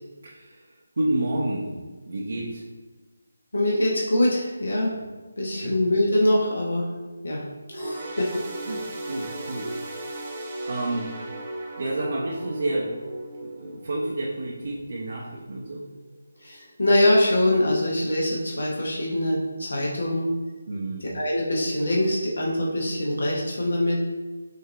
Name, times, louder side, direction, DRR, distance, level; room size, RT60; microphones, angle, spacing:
voice 1, 0.2-1.7 2.0-2.6 5.6-5.8 8.7-9.7 10.7-11.1 11.8-13.0 13.4-15.8 20.7-21.1, right 1 dB, 60° right, -4 dB, 0.8 m, -30 dB
voice 2, 3.5-4.9 5.4-6.9 7.2-7.4 7.7-8.3 16.4-20.3 21.1-24.0, left 1 dB, 70° left, -3 dB, 1.1 m, -23 dB
sound 1, 7.7-15.4 15.8-16.0 16.8-16.9, right 1 dB, 25° right, 0.7 m, -36 dB
5.3 x 2.7 x 3.3 m, 1.3 s
figure-of-eight pair, 160°, 0 cm